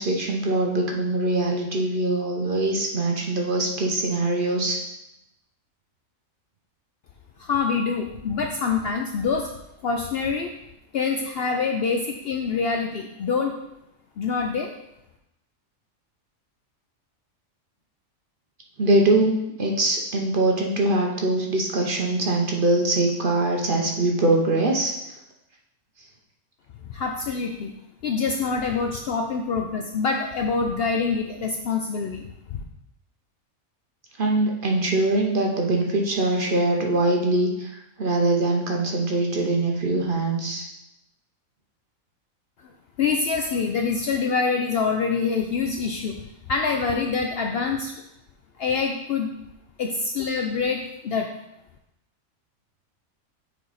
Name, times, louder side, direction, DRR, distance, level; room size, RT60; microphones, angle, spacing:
voice 1, 0.0-4.8 18.8-19.3 19.6-24.9 34.2-40.7, right 2 dB, 45° right, 1 dB, 0.8 m, -23 dB
voice 2, 7.4-9.5 9.8-10.5 10.9-13.5 14.2-14.7 26.9-27.7 28.0-32.3 43.0-46.2 46.5-47.9 48.6-49.3 49.8-51.3, left 5 dB, 65° left, 3 dB, 0.6 m, -25 dB
6.3 x 4.6 x 4.0 m, 0.87 s
omnidirectional pair, 1.4 m